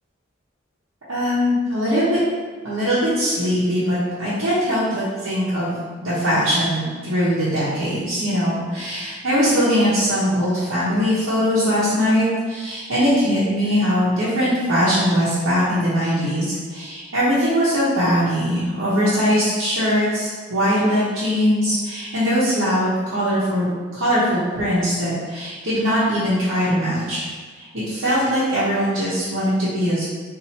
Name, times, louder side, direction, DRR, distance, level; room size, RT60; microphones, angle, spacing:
voice 1, 1.1-2.2 2.6-23.7 23.9-27.2 27.6-30.1, equal, 80° right, -11 dB, 0.9 m, -21 dB
4.1 x 2.6 x 2.8 m, 1.5 s
head